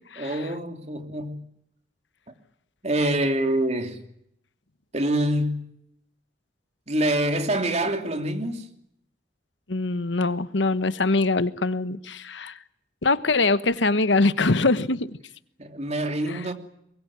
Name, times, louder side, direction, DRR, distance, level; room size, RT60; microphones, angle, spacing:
voice 1, 0.2-1.4 2.8-4.0 4.9-5.6 6.9-8.7 15.6-16.5, right 1 dB, 35° right, 3.0 m, -25 dB
voice 2, 9.7-12.6 13.0-15.1 16.3-16.5, left 3 dB, 90° left, 1.2 m, -23 dB
23.0 x 21.5 x 8.8 m
head